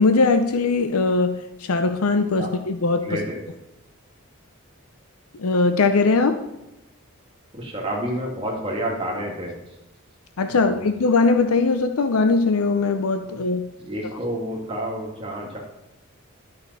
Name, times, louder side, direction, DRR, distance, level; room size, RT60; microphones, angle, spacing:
voice 1, 0.0-3.1 5.4-6.4 10.4-13.7, left 3 dB, 85° left, 8 dB, 0.6 m, -20 dB
voice 2, 3.0-3.4 7.5-9.6 10.5-10.8 13.8-15.6, right 1 dB, 25° right, -1 dB, 1.9 m, -29 dB
12.0 x 6.6 x 4.1 m, 0.93 s
head